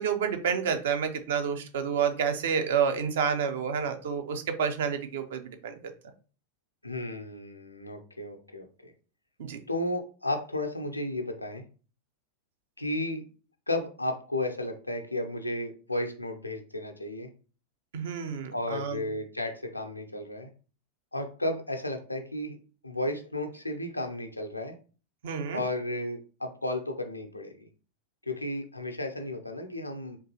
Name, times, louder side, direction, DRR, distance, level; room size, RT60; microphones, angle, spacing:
voice 1, 0.0-5.8 9.4-9.6 17.9-19.0 25.2-25.6, right 7 dB, 60° right, 7 dB, 0.6 m, -29 dB
voice 2, 6.8-8.9 9.7-11.6 12.8-13.2 13.7-17.3 18.5-20.5 21.1-22.6 22.8-24.7 25.5-27.7 28.3-30.2, left 1 dB, 85° left, 4 dB, 0.6 m, -33 dB
3.7 x 2.9 x 2.8 m, 0.37 s
figure-of-eight pair, 90°, 0 cm